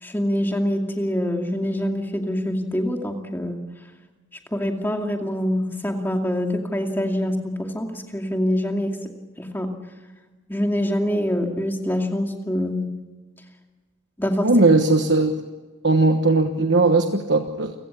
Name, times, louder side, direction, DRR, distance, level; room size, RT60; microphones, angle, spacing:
voice 1, 0.0-3.6 4.5-9.1 9.4-9.7 10.5-12.9 14.2-14.5, equal, 10° left, 3 dB, 2.4 m, -25 dB
voice 2, 14.4-15.3 15.8-17.7, right 2 dB, 55° right, 5 dB, 1.3 m, -18 dB
29.0 x 17.0 x 8.4 m, 1.3 s
head